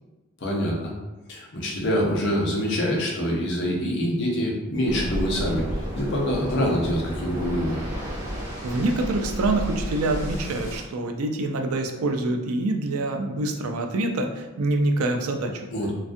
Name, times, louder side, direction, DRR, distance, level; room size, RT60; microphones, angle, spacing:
voice 1, 0.4-0.9 1.3-5.6 5.9-7.8 15.7-15.9, equal, 55° left, -2 dB, 0.6 m, -25 dB
Waves surf, 4.9-10.8, equal, 20° right, 1.2 m, -32 dB
voice 2, 8.4-15.6, right 2 dB, 90° right, 4 dB, 0.4 m, -26 dB
2.5 x 2.3 x 2.5 m, 1.2 s
head